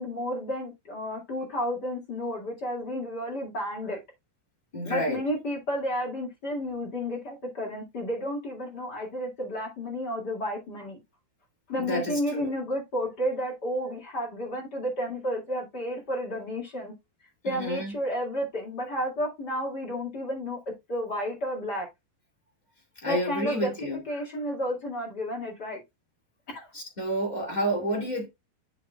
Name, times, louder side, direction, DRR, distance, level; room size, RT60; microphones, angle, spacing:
voice 1, 0.0-4.0 4.8-11.0 11.7-16.9 17.4-20.6 20.9-21.9 23.0-23.7 24.1-25.8 26.5-26.7, equal, 35° left, 1.7 m, -31 dB
voice 2, 4.7-5.2 11.8-12.5 17.4-17.9 23.0-24.0 26.7-28.3, equal, 65° left, 0.4 m, -30 dB
8.7 x 6.2 x 2.2 m
omnidirectional pair, 5.0 m